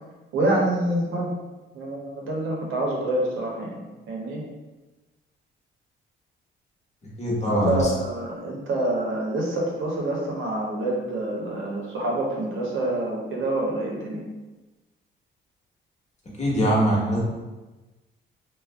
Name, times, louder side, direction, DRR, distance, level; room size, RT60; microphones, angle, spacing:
voice 1, 0.3-1.3 1.7-3.8 4.1-4.4 7.4-14.2, right 1 dB, 80° right, -2 dB, 0.8 m, -27 dB
voice 2, 7.2-7.9 16.4-17.2, equal, 35° left, -5 dB, 1.0 m, -22 dB
2.5 x 2.1 x 3.3 m, 1.2 s
cardioid pair, 90°, 20 cm